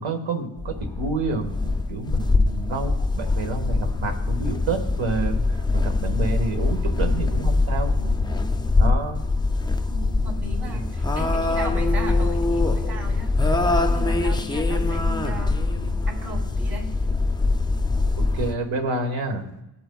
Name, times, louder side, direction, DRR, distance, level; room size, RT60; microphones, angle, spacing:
voice 1, 0.0-5.4 5.7-7.9 8.8-9.2 18.3-19.4, right 3 dB, 75° right, 5 dB, 1.5 m, -28 dB
sound 1, 0.6-18.5, left 3 dB, 10° left, 0.3 m, -23 dB
voice 2, 8.0-8.3 9.9-16.9, right 3 dB, 55° right, -1 dB, 2.7 m, -37 dB
17.5 x 8.9 x 2.3 m, 0.93 s
wide cardioid pair, 145°, 46 cm